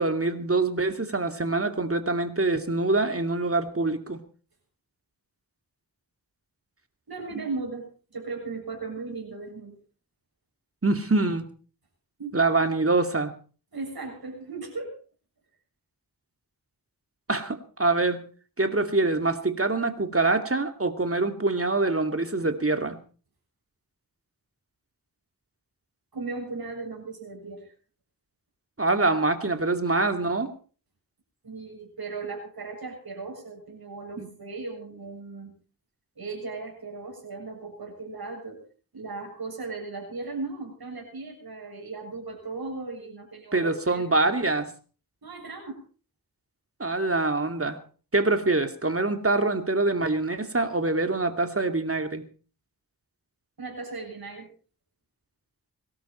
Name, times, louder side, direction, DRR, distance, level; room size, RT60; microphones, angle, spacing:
voice 1, 0.0-4.2 10.8-11.5 12.3-13.3 17.3-18.3 18.6-23.0 28.8-30.5 34.2-34.3 43.5-44.7 46.8-47.8 48.1-52.2, right 3 dB, 35° right, 7 dB, 2.5 m, -25 dB
voice 2, 7.1-9.8 12.2-12.4 13.7-15.0 26.1-27.7 31.4-35.6 36.2-38.6 38.9-44.0 45.2-45.8 53.6-54.5, right 3 dB, 70° right, 1 dB, 7.2 m, -37 dB
23.0 x 12.5 x 4.4 m, 0.40 s
wide cardioid pair, 55°, 39 cm